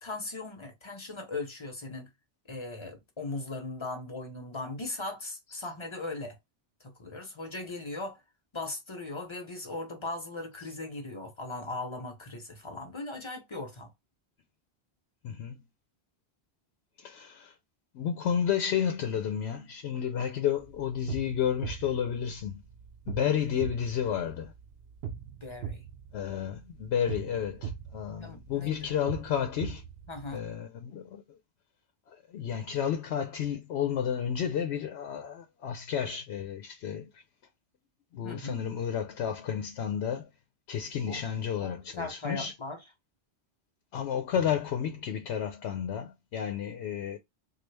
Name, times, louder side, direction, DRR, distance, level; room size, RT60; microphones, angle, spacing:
voice 1, 0.0-2.1 2.5-6.4 6.8-8.2 8.5-13.9 25.4-25.8 28.2-29.0 30.1-30.4 38.2-38.6 41.1-41.3 41.6-42.8, left 2 dB, 30° left, 0.8 m, -38 dB
voice 2, 15.2-15.6 17.0-17.5 17.9-22.6 23.1-24.5 26.1-29.8 30.3-31.2 32.1-37.2 38.1-40.3 40.7-42.5 43.9-47.2, left 8 dB, 85° left, 0.9 m, -31 dB
sound 1, 20.6-30.5, right 7 dB, 70° right, 0.8 m, -42 dB
3.1 x 2.3 x 3.3 m
omnidirectional pair, 1.1 m